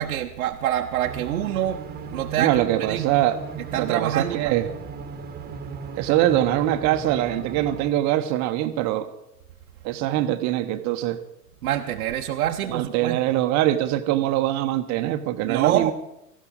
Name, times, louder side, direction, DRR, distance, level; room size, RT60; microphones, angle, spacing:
voice 1, 0.0-3.1 3.7-4.6 11.6-13.2 15.5-15.9, right 11 dB, 60° right, 2 dB, 1.0 m, -26 dB
sound 1, 1.0-7.9, right 5 dB, 20° right, 1.6 m, -37 dB
voice 2, 2.4-3.4 3.8-4.7 6.0-9.1 9.8-11.2 12.7-15.9, right 13 dB, 35° right, 9 dB, 1.1 m, -23 dB
18.5 x 15.5 x 4.0 m, 0.83 s
figure-of-eight pair, 95°, 48 cm